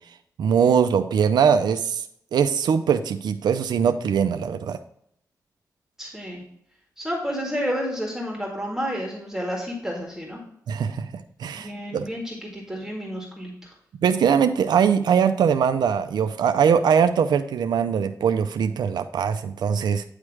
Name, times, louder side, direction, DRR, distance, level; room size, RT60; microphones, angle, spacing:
voice 1, 0.4-2.0 2.3-4.8 10.7-11.1 11.4-12.1 14.0-20.0, right 7 dB, 90° right, 9 dB, 0.4 m, -21 dB
voice 2, 6.0-6.4 7.0-10.4 11.5-13.5, equal, 5° right, -2 dB, 1.9 m, -30 dB
9.6 x 3.2 x 4.8 m, 0.68 s
cardioid pair, 80°, 7 cm